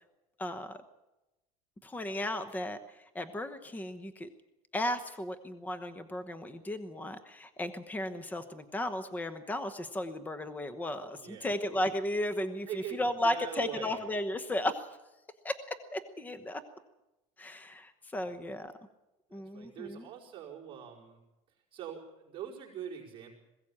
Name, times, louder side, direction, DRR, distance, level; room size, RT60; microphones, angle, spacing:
voice 1, 0.4-0.8 1.8-2.8 3.1-4.3 4.7-14.9 15.4-16.6 17.4-18.7 19.3-20.1, left 1 dB, 10° left, 11 dB, 1.0 m, -35 dB
voice 2, 11.2-11.5 12.7-14.0 18.2-18.3 19.3-21.2 21.7-23.3, right 9 dB, 30° right, -4 dB, 4.8 m, -43 dB
21.0 x 16.5 x 8.7 m, 0.99 s
cardioid pair, 155°, 17 cm